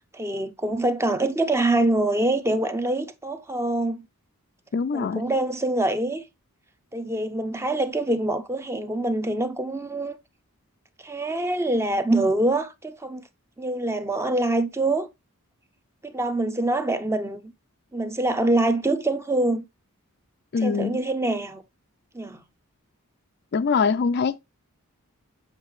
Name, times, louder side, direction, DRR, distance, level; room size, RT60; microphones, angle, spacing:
voice 1, 0.1-4.0 4.9-6.2 6.9-10.2 11.0-13.2 13.6-15.1 16.0-17.5 17.9-19.6 20.6-21.6 22.1-22.4, right 2 dB, 10° right, 0.5 m, -25 dB
voice 2, 4.7-5.2 20.5-21.0 23.5-24.4, left 5 dB, 45° left, 0.4 m, -23 dB
7.4 x 5.5 x 3.0 m
head